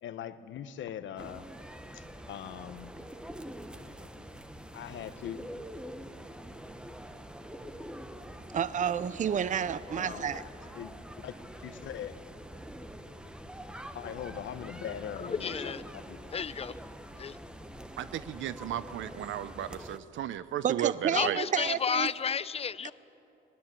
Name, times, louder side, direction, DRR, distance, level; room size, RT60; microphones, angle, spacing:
voice 1, 0.0-1.4 1.9-2.9 4.7-5.4 10.0-10.5 10.8-10.9 11.2-11.3 11.6-12.2 13.9-16.3, left 10 dB, 70° left, 1.0 m, -41 dB
sound 1, 1.2-20.0, equal, 5° right, 1.1 m, -45 dB
voice 2, 8.5-10.4 20.6-22.1 22.8-22.9, right 8 dB, 40° right, 0.6 m, -30 dB
voice 3, 15.2-15.8 16.3-16.8 17.2-17.4 21.1-22.9, left 6 dB, 30° left, 0.5 m, -32 dB
voice 4, 18.0-21.4, right 11 dB, 75° right, 0.7 m, -34 dB
21.5 x 19.0 x 7.6 m
cardioid pair, 90°, 20 cm